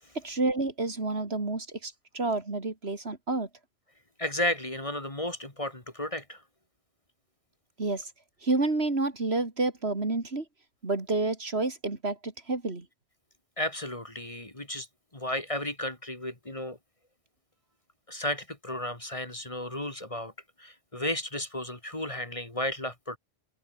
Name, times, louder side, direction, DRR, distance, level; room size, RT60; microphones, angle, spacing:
voice 1, 0.1-3.5 7.8-8.1 8.4-10.4 10.8-12.9, right 3 dB, 60° right, 3.3 m, -29 dB
voice 2, 4.2-6.4 13.6-14.9 15.1-16.8 18.1-20.3 20.6-23.2, left 1 dB, 30° left, 2.6 m, -33 dB
omnidirectional pair, 1.2 m